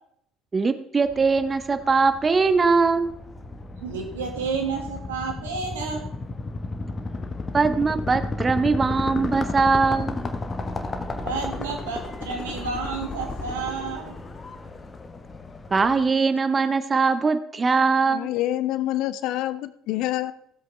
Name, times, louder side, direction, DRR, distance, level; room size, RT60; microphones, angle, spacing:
voice 1, 0.5-3.1 7.5-10.2 15.7-18.3, right 4 dB, 30° right, 11 dB, 0.8 m, -21 dB
sound 1, 1.1-16.1, left 3 dB, 30° left, 1.1 m, -33 dB
voice 2, 3.8-6.0 11.2-14.1, right 5 dB, 80° right, 2 dB, 1.8 m, -30 dB
voice 3, 18.1-20.3, left 14 dB, 65° left, 15 dB, 0.5 m, -26 dB
15.5 x 7.9 x 3.3 m, 0.73 s
hypercardioid pair, 60°, 0 cm